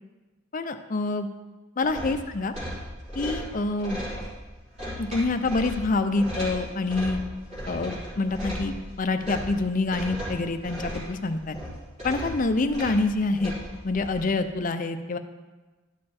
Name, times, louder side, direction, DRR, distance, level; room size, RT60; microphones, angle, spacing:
voice 1, 0.5-1.3 1.8-2.5 3.1-4.0 5.0-7.2 7.7-11.6 12.0-13.5 13.8-15.2, left 3 dB, 35° left, 9 dB, 0.5 m, -26 dB
sound 1, 1.8-14.3, equal, 30° right, 3.8 m, -36 dB
12.0 x 6.6 x 4.3 m, 1.2 s
head